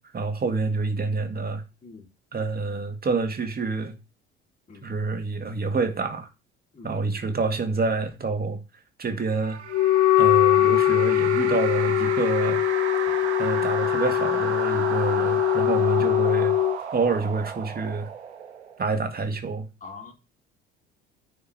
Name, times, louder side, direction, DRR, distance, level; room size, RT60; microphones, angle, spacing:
voice 1, 0.0-1.6 2.3-3.9 4.8-6.3 6.8-8.6 9.0-9.6 10.2-12.6 13.4-16.5 16.9-18.1 18.8-19.7, right 4 dB, 30° right, 2.1 m, -27 dB
voice 2, 6.7-7.4 19.8-20.1, left 4 dB, 25° left, 3.8 m, -46 dB
sound 1, 9.3-18.9, right 7 dB, 85° right, 1.2 m, -33 dB
Wind instrument woodwind instrument, 9.7-16.8, left 14 dB, 55° left, 0.7 m, -22 dB
9.4 x 5.1 x 7.6 m
figure-of-eight pair, 55°, 33 cm